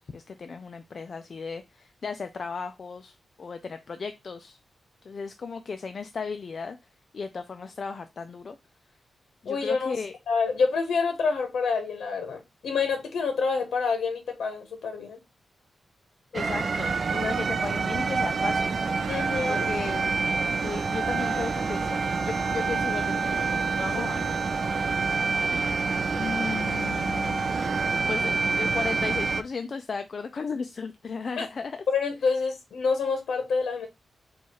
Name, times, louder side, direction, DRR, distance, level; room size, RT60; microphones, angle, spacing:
voice 1, 0.1-4.6 5.1-6.8 7.1-8.6 9.4-10.1 16.3-18.8 19.5-20.2 20.6-23.3 23.8-24.3 26.1-27.5 28.1-31.8, left 5 dB, 40° left, 0.3 m, -35 dB
voice 2, 9.5-9.9 10.3-15.2 19.1-19.7 31.4-31.5 31.9-33.9, left 5 dB, 80° left, 0.8 m, -27 dB
sound 1, 16.3-29.4, right 4 dB, 45° right, 0.3 m, -27 dB
4.6 x 2.3 x 4.0 m
wide cardioid pair, 165°, 0 cm